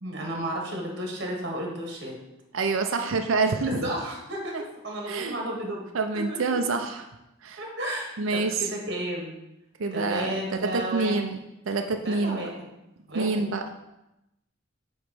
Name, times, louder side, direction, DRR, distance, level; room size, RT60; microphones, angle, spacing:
voice 1, 0.0-2.1 3.6-5.9 6.1-6.8 7.6-9.4 9.9-11.2 12.0-12.7 13.1-13.4, right 1 dB, 60° right, 0 dB, 1.5 m, -33 dB
voice 2, 2.5-3.8 4.5-4.6 5.1-5.4 5.9-7.0 7.4-7.6 8.2-8.7 9.8-11.4 11.7-12.4 13.1-13.6, right 4 dB, 85° right, 5 dB, 0.6 m, -27 dB
7.8 x 3.1 x 5.2 m, 0.90 s
head